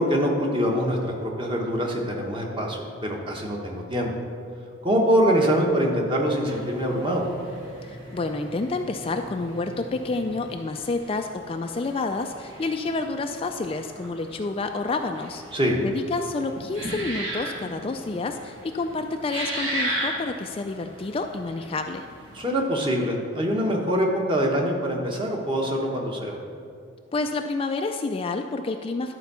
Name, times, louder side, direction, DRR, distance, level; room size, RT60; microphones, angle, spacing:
voice 1, 0.0-4.1 4.8-7.2 15.5-15.8 22.3-26.4, equal, 25° right, 0 dB, 1.2 m, -24 dB
sound 1, 6.5-22.5, right 1 dB, 85° right, 2.1 m, -37 dB
voice 2, 7.9-15.4 15.8-22.0 27.1-29.1, left 3 dB, 30° left, 6 dB, 0.3 m, -29 dB
11.5 x 4.6 x 6.8 m, 2.3 s
head